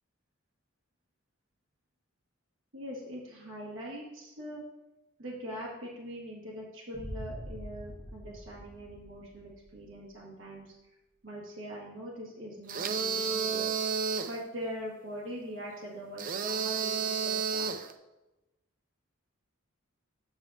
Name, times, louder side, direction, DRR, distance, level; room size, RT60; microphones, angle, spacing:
voice 1, 2.7-4.6 5.2-10.7 11.2-13.7 14.2-17.7, equal, 60° right, -4 dB, 1.5 m, -42 dB
sound 1, 6.9-9.9, equal, 5° left, 1.4 m, -44 dB
sound 2, 12.7-14.4 16.2-17.9, right 6 dB, 40° right, 0.4 m, -31 dB
7.9 x 6.9 x 2.7 m, 0.99 s
head